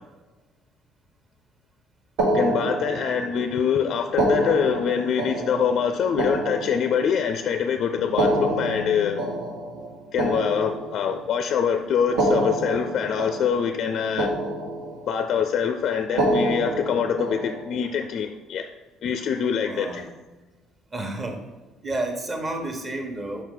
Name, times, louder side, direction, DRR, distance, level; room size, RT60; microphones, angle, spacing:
sound 1, 2.2-3.4 4.1-7.4 8.0-11.3 12.0-13.9 14.2-15.2 16.1-17.9, right 1 dB, 90° right, 1.3 m, -27 dB
voice 1, 2.3-9.2 10.1-14.3 15.1-18.7 19.0-20.0, left 7 dB, 55° left, 7 dB, 0.4 m, -24 dB
sound 2, 7.3-9.8, left 7 dB, 65° right, 0.7 m, -43 dB
voice 2, 19.6-20.1 20.9-21.4 21.8-23.4, right 2 dB, 30° right, 3 dB, 1.1 m, -30 dB
5.5 x 4.6 x 3.7 m, 1.2 s
cardioid pair, 105°, 0 cm